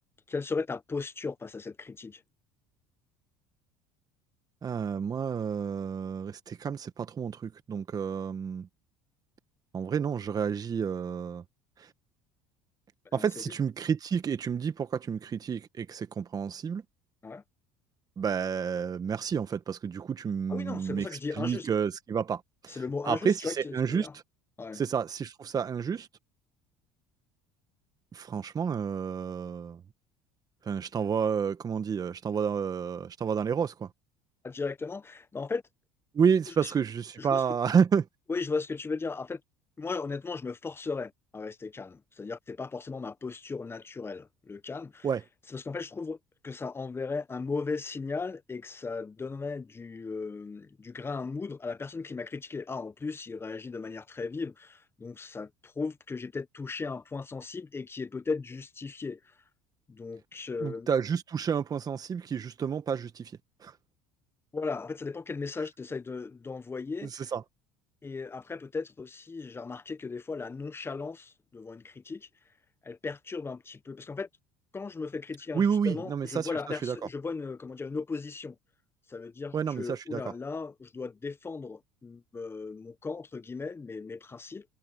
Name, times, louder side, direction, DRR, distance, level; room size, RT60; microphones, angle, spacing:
voice 1, 0.3-2.2 13.1-13.3 17.2-17.4 20.5-21.7 22.7-24.1 24.6-24.8 34.4-35.6 36.6-36.7 37.2-37.4 38.3-39.4 39.8-45.1 45.5-46.2 46.4-59.2 59.9-60.9 64.5-67.2 68.0-72.3 72.8-74.3 74.7-78.6 79.1-84.6, left 4 dB, 20° left, 1.1 m, -36 dB
voice 2, 4.6-8.7 9.7-11.4 11.8-11.9 13.1-16.8 18.2-24.2 24.7-26.1 28.1-29.8 30.6-33.9 36.1-38.1 45.0-45.2 60.6-63.3 63.6-63.7 67.0-67.4 75.5-77.0 79.5-80.2, right 7 dB, 35° right, 1.4 m, -30 dB
supercardioid pair, 85°, 11 cm